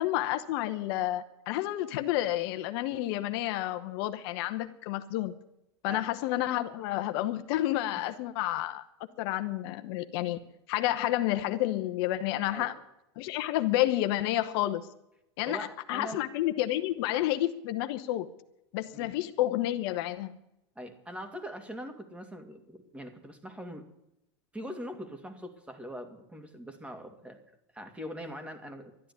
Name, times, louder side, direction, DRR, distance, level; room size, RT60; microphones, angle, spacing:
voice 1, 0.0-5.3 5.8-8.8 9.2-10.4 10.7-12.7 13.2-14.9 15.4-18.3 18.7-20.3, left 14 dB, 65° left, 1.0 m, -30 dB
voice 2, 15.5-16.3 18.9-19.1 20.8-23.9 24.5-27.4 27.7-28.9, equal, 10° right, 2.5 m, -42 dB
12.5 x 10.0 x 9.7 m
hypercardioid pair, 105°, 14 cm